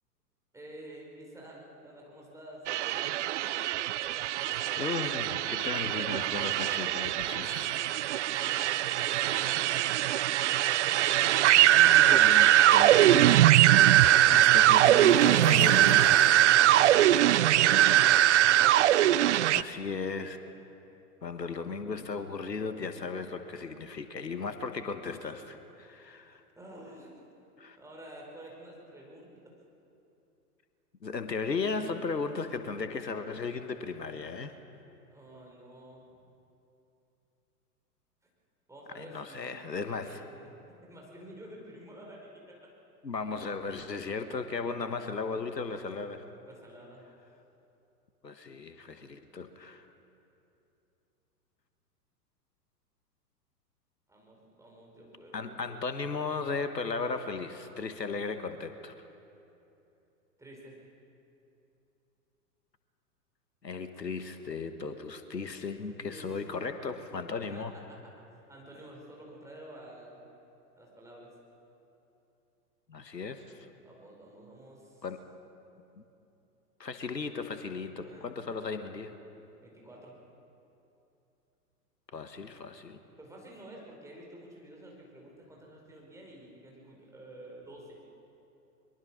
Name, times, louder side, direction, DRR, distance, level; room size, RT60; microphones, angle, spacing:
voice 1, 0.5-2.6 8.4-9.9 17.4-18.2 18.7-19.6 26.5-27.1 27.8-29.5 35.1-36.1 38.7-40.5 40.8-42.7 46.4-47.0 54.1-55.8 60.4-60.8 65.9-68.0 68.3-70.2 70.8-71.3 73.8-75.0 78.0-78.3 79.6-80.1 83.2-88.0, right 1 dB, 5° right, -2 dB, 4.9 m, -50 dB
sound 1, 2.7-19.6, right 13 dB, 50° right, 0.5 m, -22 dB
voice 2, 4.8-7.8 11.5-13.3 14.3-16.2 19.5-20.4 21.2-26.4 27.6-27.8 31.0-34.5 38.9-40.2 43.0-46.3 48.2-49.9 55.3-58.9 63.6-67.7 72.9-73.7 75.0-75.2 76.0-76.1 76.8-79.1 82.1-83.0, left 4 dB, 85° left, 9 dB, 1.3 m, -36 dB
Skateboard, 11.5-19.0 19.2-19.8, left 3 dB, 50° left, 4.9 m, -44 dB
23.0 x 22.5 x 6.2 m, 2.8 s
figure-of-eight pair, 100°, 49 cm